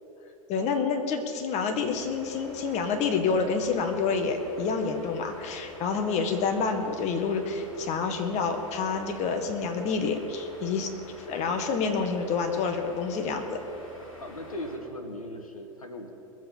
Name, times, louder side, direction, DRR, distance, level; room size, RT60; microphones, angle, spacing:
voice 1, 0.5-10.9 11.3-13.6, left 5 dB, 40° left, 6 dB, 1.6 m, -28 dB
sound 1, 1.7-14.8, left 1 dB, 70° left, 2.9 m, -47 dB
voice 2, 14.2-16.1, left 1 dB, 90° left, 5 dB, 1.2 m, -38 dB
21.5 x 7.8 x 5.5 m, 2.9 s
figure-of-eight pair, 90°, 18 cm